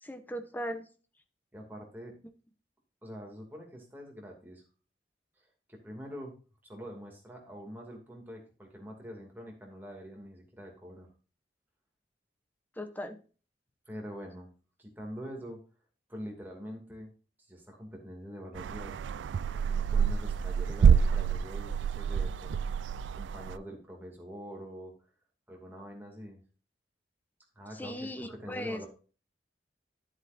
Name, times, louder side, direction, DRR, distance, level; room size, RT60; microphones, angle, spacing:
voice 1, 0.0-0.8 12.8-13.2 27.7-28.8, equal, 10° left, 9 dB, 0.8 m, -38 dB
voice 2, 1.5-2.2 3.0-4.6 5.7-6.3 6.6-11.1 13.9-14.5 14.8-15.6 16.1-17.1 17.5-19.0 19.5-24.9 25.5-26.4 27.6-28.9, equal, 10° right, 0 dB, 2.5 m, -45 dB
sound 1, 18.6-23.6, right 6 dB, 85° right, 0.3 m, -27 dB
11.0 x 7.9 x 2.6 m, 0.36 s
head